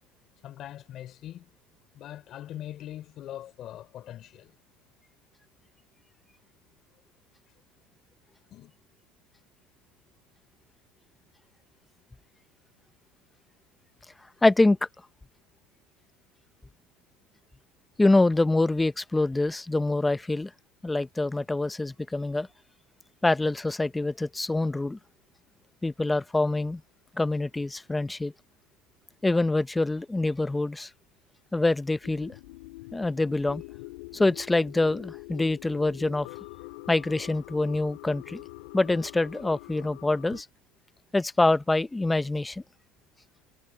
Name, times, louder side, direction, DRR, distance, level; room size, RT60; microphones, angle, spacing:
voice 1, 0.4-1.5 1.9-4.6 8.5-8.7, left 12 dB, 45° left, 4.3 m, -42 dB
voice 2, 14.4-14.8 18.0-20.5 20.8-22.5 23.2-25.0 25.8-26.8 27.2-28.3 29.2-30.9 31.5-32.3 32.9-33.6 34.1-36.3 36.9-38.4 38.7-40.5 41.1-42.6, left 2 dB, 10° left, 0.6 m, -25 dB
sound 1, 32.0-40.4, left 23 dB, 80° left, 2.1 m, -44 dB
supercardioid pair, 140°, 0 cm